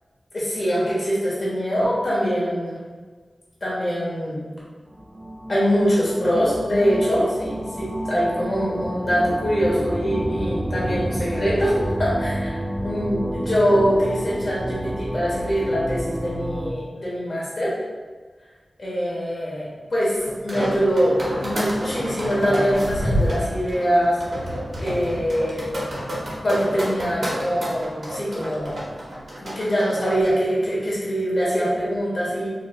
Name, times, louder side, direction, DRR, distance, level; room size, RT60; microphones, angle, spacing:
voice 1, 0.3-2.7 3.6-4.4 5.5-11.7 12.0-17.7 18.8-20.1 20.4-24.4 24.8-25.7 26.4-28.8 29.4-32.5, equal, 60° left, -7 dB, 1.1 m, -23 dB
sound 1, 4.9-16.7, right 1 dB, 25° right, 0.4 m, -30 dB
sound 2, 20.2-30.3, equal, 70° right, 0.9 m, -29 dB
3.1 x 3.0 x 2.2 m, 1.4 s
wide cardioid pair, 65°, 0 cm